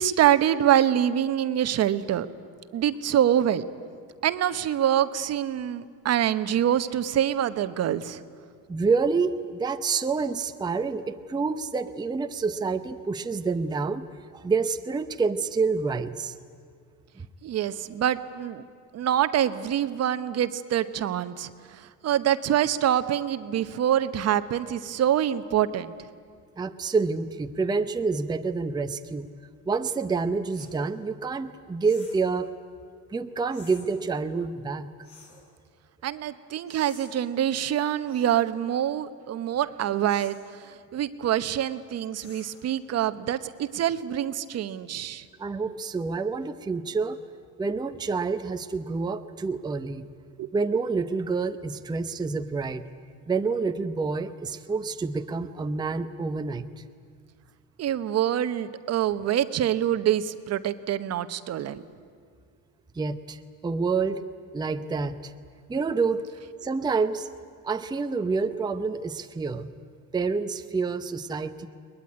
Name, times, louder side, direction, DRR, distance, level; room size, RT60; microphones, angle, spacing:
voice 1, 0.0-2.3 2.7-3.6 4.2-8.2 17.4-18.6 18.9-25.9 36.0-40.4 40.9-45.2 50.4-50.5 57.8-61.8, right 10 dB, 45° right, 12 dB, 1.0 m, -25 dB
voice 2, 8.7-14.1 14.3-16.3 17.2-17.3 26.6-29.3 29.7-32.5 33.1-34.9 45.4-47.2 47.6-50.1 50.5-52.9 53.3-56.8 62.9-64.2 64.5-65.3 65.7-66.3 66.6-67.3 67.6-69.7 70.1-71.7, right 4 dB, 10° right, 7 dB, 0.7 m, -28 dB
sound 1, 30.5-30.8 31.8-32.3 33.5-33.9 35.0-35.4 36.7-37.1 38.1-38.4 40.1-40.4 42.1-42.7, left 4 dB, 50° left, 7.3 m, -51 dB
22.0 x 20.5 x 9.6 m, 2.1 s
cardioid pair, 120°, 35 cm